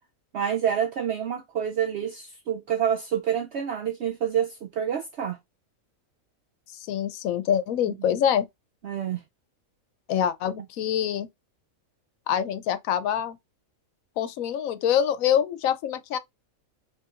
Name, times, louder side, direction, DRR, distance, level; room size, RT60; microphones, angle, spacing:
voice 1, 0.3-5.4 7.9-8.0 8.8-9.2, right 9 dB, 60° right, 0.8 m, -27 dB
voice 2, 6.7-8.5 10.1-11.3 12.3-13.4 14.2-16.2, left 9 dB, 75° left, 1.0 m, -25 dB
5.6 x 3.2 x 2.4 m
omnidirectional pair, 1.5 m